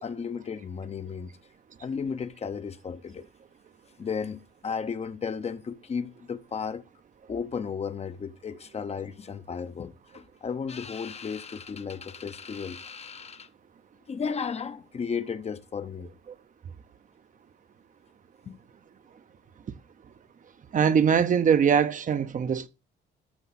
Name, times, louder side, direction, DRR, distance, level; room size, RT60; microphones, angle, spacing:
voice 1, 0.0-1.3 1.8-3.3 4.0-6.8 7.3-13.5 14.1-16.1 18.5-18.6, left 6 dB, 35° left, 0.7 m, -34 dB
voice 2, 20.7-22.7, right 7 dB, 45° right, 0.7 m, -22 dB
14.0 x 5.8 x 4.2 m
cardioid pair, 110°, 18 cm